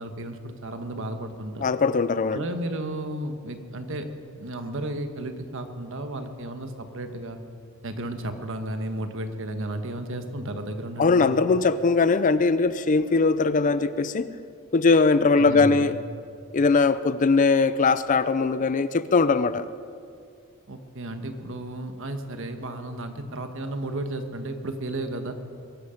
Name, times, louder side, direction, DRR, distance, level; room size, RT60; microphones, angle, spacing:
voice 1, 0.0-1.7 2.3-4.1 4.4-7.4 7.8-11.4 15.4-15.9 20.7-25.3, right 1 dB, 65° right, 7 dB, 1.2 m, -33 dB
voice 2, 1.6-2.4 11.0-14.3 14.7-16.0 16.5-19.7, left 4 dB, 35° left, 14 dB, 0.4 m, -21 dB
22.0 x 11.5 x 5.1 m, 2.3 s
head